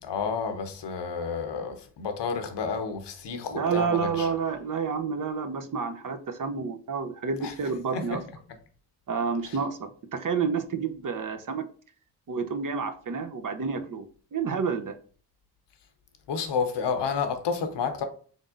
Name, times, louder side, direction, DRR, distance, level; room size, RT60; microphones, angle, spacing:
voice 1, 0.0-4.3 7.4-7.5 7.9-8.2 9.4-9.6 16.3-18.1, left 5 dB, 80° left, 0.8 m, -30 dB
voice 2, 3.5-8.2 9.1-11.7 12.3-14.1 14.3-15.0, right 5 dB, 50° right, 0.7 m, -29 dB
3.9 x 3.5 x 2.5 m
supercardioid pair, 45°, 42 cm